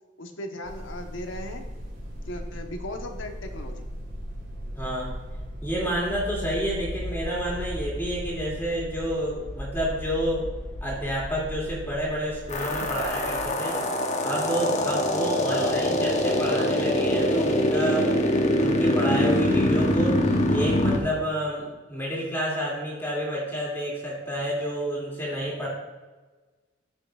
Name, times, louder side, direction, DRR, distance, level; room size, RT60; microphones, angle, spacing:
voice 1, 0.2-1.6 2.3-3.8 15.5-15.7, left 1 dB, 90° left, 4 dB, 1.1 m, -37 dB
sound 1, 0.6-13.5, equal, 75° right, 2.5 m, -37 dB
voice 2, 4.8-5.1 5.6-10.5 10.8-13.8 14.2-18.3 18.5-25.7, equal, 10° left, -5 dB, 2.4 m, -29 dB
sound 2, 12.5-21.0, left 1 dB, 40° left, 0.9 m, -23 dB
14.0 x 5.8 x 2.4 m, 1.3 s
head